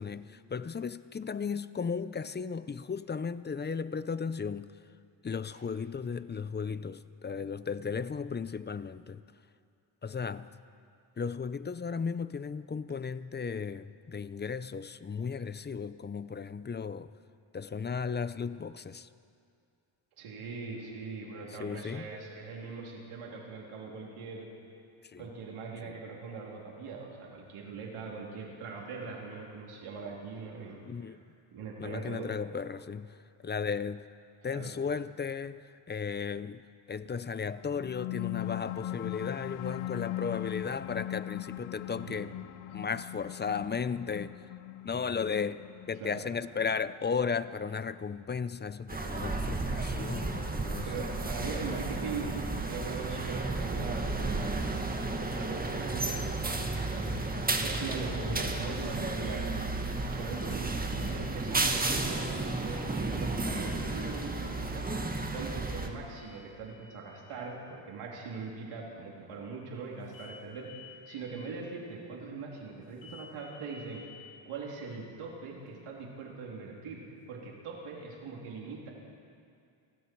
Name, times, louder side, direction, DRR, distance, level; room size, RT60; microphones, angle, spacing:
voice 1, 0.0-4.7 5.2-9.2 10.0-10.5 11.2-17.1 17.5-19.1 21.5-22.1 25.0-25.3 25.8-25.9 30.8-31.2 31.8-34.1 34.4-36.6 36.9-42.3 42.7-44.5 44.8-51.0 58.2-58.5 61.7-61.8, left 6 dB, 20° left, 0.5 m, -35 dB
voice 2, 20.2-24.5 25.2-30.8 31.1-31.2 31.5-32.3 34.4-34.7 42.0-42.2 42.7-42.8 46.0-46.2 50.8-54.7 55.1-59.6 60.0-64.9 65.3-74.0 74.5-78.9, right 4 dB, 85° right, 3.7 m, -41 dB
sound 1, 37.6-48.6, left 15 dB, 85° left, 0.7 m, -40 dB
sound 2, 48.9-65.9, right 2 dB, 20° right, 1.8 m, -33 dB
sound 3, 60.3-61.5 63.0-64.1 66.2-67.2 70.1-71.2 73.0-74.1, left 5 dB, 65° left, 6.2 m, -55 dB
29.5 x 19.5 x 4.7 m
cardioid pair, 110°, 49 cm